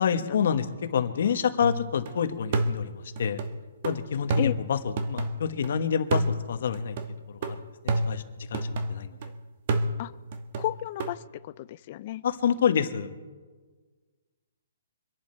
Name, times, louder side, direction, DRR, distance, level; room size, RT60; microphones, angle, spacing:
voice 1, 0.0-3.4 3.8-7.0 7.3-9.3 12.2-13.1, left 7 dB, 55° left, 8 dB, 1.3 m, -28 dB
sound 1, 1.6-2.1 2.5-5.7 6.1-9.3 9.7-11.1, right 2 dB, 35° right, 1.1 m, -30 dB
voice 2, 10.6-12.2, left 15 dB, 30° left, 18 dB, 0.3 m, -33 dB
26.0 x 11.0 x 4.5 m, 1.4 s
hypercardioid pair, 170°, 0 cm